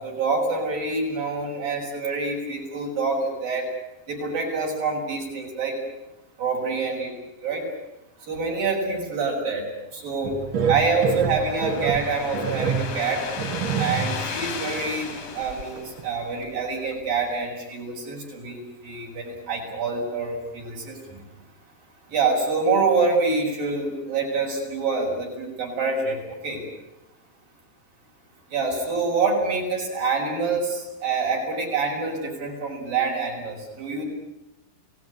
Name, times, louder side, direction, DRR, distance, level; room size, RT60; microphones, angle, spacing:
voice 1, 0.0-3.7 4.1-5.8 6.4-7.1 7.4-7.6 8.2-9.6 9.9-10.4 10.7-13.2 13.7-21.2 22.1-26.6 28.5-34.0, right 4 dB, 80° right, -1 dB, 8.3 m, -26 dB
sound 1, 10.0-16.5, left 5 dB, 80° left, 4.9 m, -36 dB
sound 2, 10.2-14.4 14.7-14.9 15.4-16.1 16.4-16.5 16.9-17.0, right 6 dB, 50° right, 1.7 m, -27 dB
29.0 x 18.0 x 9.8 m, 0.95 s
omnidirectional pair, 4.0 m